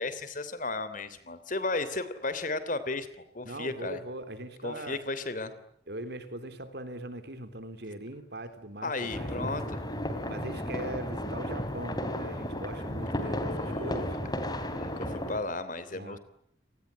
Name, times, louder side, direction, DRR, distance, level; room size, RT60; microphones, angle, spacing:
voice 1, 0.0-4.0 4.6-5.5 8.8-9.8 13.1-14.1 14.7-16.2, left 2 dB, 45° left, 14 dB, 3.1 m, -34 dB
voice 2, 3.4-5.0 5.9-9.6 10.3-14.2 15.9-16.2, right 1 dB, 60° right, 10 dB, 3.6 m, -41 dB
sound 1, 9.1-15.4, left 1 dB, 20° left, 3.4 m, -34 dB
30.0 x 19.0 x 10.0 m, 0.69 s
head